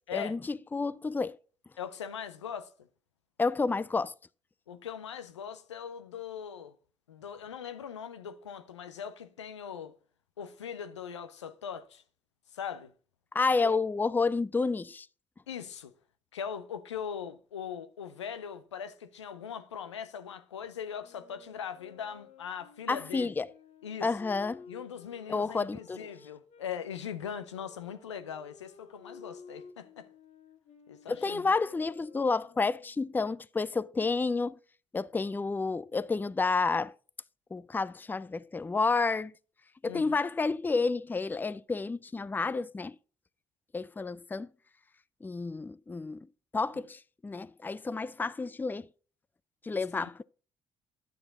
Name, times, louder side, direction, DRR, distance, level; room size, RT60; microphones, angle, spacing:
voice 1, 0.1-1.4 3.4-4.1 13.3-15.1 22.9-23.5 24.0-24.6 25.3-26.1 31.1-34.6 34.9-36.9 37.5-39.3 39.8-43.0 43.7-44.5 45.2-46.3 46.5-48.9 49.6-50.2, left 4 dB, 15° left, 0.4 m, -30 dB
voice 2, 1.8-2.7 4.7-6.7 7.1-9.9 10.4-12.0 12.5-12.9 13.6-13.8 15.5-15.9 16.3-23.3 23.8-24.1 24.7-30.1 30.9-31.5 39.9-40.2 49.9-50.1, left 8 dB, 90° left, 0.5 m, -40 dB
sound 1, 20.9-26.7 27.4-33.1, left 5 dB, 55° left, 1.7 m, -54 dB
10.5 x 6.8 x 3.9 m
hypercardioid pair, 50°, 15 cm